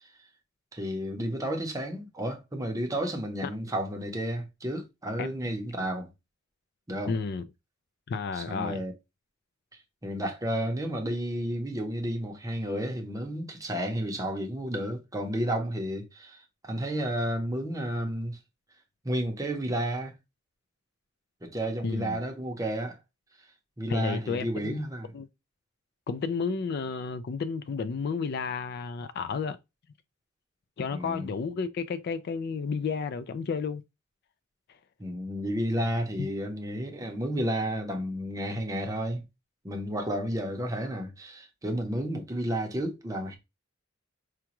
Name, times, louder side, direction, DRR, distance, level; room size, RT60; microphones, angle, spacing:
voice 1, 0.7-6.1 6.9-7.2 8.3-8.9 10.0-18.4 19.0-20.1 21.4-23.0 23.8-25.1 30.9-31.3 35.0-39.2 39.6-43.4, equal, 15° right, 0.8 m, -32 dB
voice 2, 7.1-7.4 8.1-8.8 21.8-22.2 23.9-24.8 25.1-25.3 26.1-29.6 30.8-33.8 36.2-36.3, left 5 dB, 55° left, 0.3 m, -32 dB
4.9 x 2.3 x 2.9 m
head